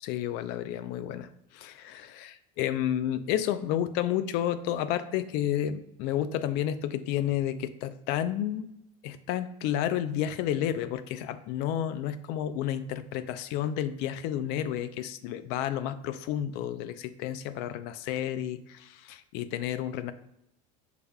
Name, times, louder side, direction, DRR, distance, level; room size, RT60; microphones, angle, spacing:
voice 1, 0.0-8.7 9.0-20.1, left 11 dB, 70° left, 12 dB, 0.4 m, -31 dB
6.6 x 3.3 x 2.3 m, 0.80 s
supercardioid pair, 100°, 18 cm